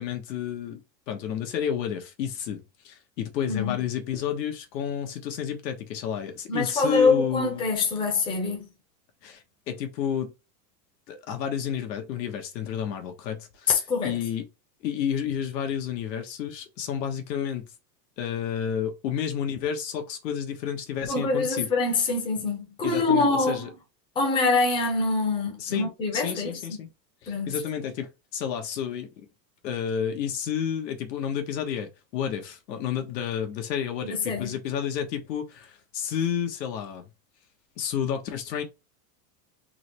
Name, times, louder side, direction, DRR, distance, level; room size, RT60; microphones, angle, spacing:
voice 1, 0.0-7.6 9.2-10.3 11.1-13.7 14.0-14.5 14.8-17.7 18.2-21.7 22.8-23.7 25.6-26.9 27.2-29.3 29.6-37.0 37.8-38.6, left 8 dB, 80° left, 1.4 m, -31 dB
voice 2, 3.5-3.8 6.5-8.7 13.7-14.1 21.0-23.7 24.2-26.8 27.3-27.5 34.0-34.5, left 3 dB, 10° left, 0.8 m, -25 dB
3.9 x 3.2 x 3.0 m
supercardioid pair, 170°, 49 cm